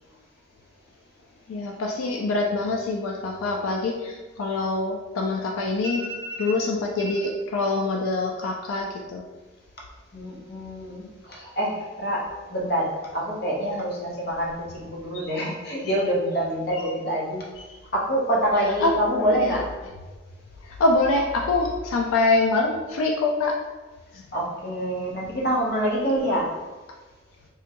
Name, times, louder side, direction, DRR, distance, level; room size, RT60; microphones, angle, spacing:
voice 1, 1.5-6.0 6.4-9.2 15.1-15.3 18.8-18.9 19.4-19.6 20.6-23.6 24.1-24.2 25.0-25.1, left 2 dB, 90° left, 1 dB, 0.4 m, -25 dB
voice 2, 5.8-6.5 10.1-17.4 17.9-19.6 24.3-26.5, right 1 dB, 50° left, -4 dB, 0.8 m, -26 dB
3.5 x 2.2 x 2.9 m, 1.3 s
head